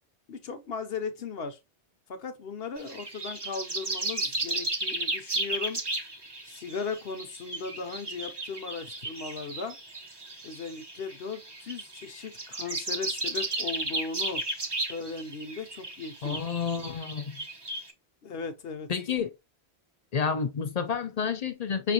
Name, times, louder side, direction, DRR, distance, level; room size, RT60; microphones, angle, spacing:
voice 1, 0.3-1.6 2.1-5.8 6.4-9.8 10.4-14.4 14.9-16.4 18.2-18.9, left 5 dB, 70° left, 1.0 m, -37 dB
sound 1, 2.8-17.9, right 2 dB, 25° right, 0.8 m, -34 dB
voice 2, 16.2-17.4 18.9-19.3 20.1-21.9, left 6 dB, 45° left, 0.7 m, -29 dB
5.7 x 2.5 x 2.8 m
omnidirectional pair, 1.1 m